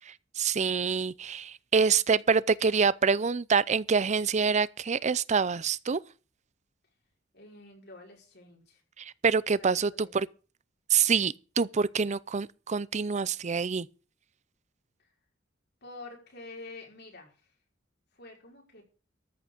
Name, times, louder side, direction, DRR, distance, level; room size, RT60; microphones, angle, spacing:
voice 1, 0.4-6.0 9.0-10.3 10.9-13.9, right 5 dB, 35° right, 0.5 m, -26 dB
voice 2, 7.3-8.8 9.6-10.1 15.0-15.1 15.8-17.5 18.1-18.8, left 2 dB, 60° left, 5.5 m, -48 dB
13.5 x 6.1 x 8.2 m
head